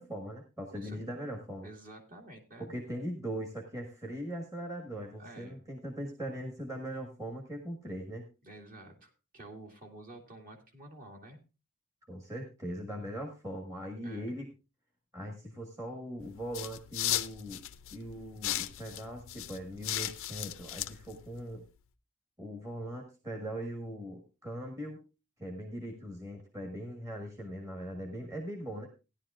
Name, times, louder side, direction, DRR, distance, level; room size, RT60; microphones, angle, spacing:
voice 1, 0.0-1.7 2.6-8.3 12.1-14.5 15.1-17.6 17.9-21.6 22.4-25.0 25.4-28.9, equal, 15° right, 2 dB, 1.4 m, -40 dB
voice 2, 1.6-2.8 5.2-5.6 8.4-11.4 14.0-14.3, right 1 dB, 40° right, 1 dB, 2.3 m, -50 dB
sound 1, 16.2-21.7, left 13 dB, 60° left, 0.6 m, -37 dB
16.5 x 10.5 x 2.4 m, 0.30 s
head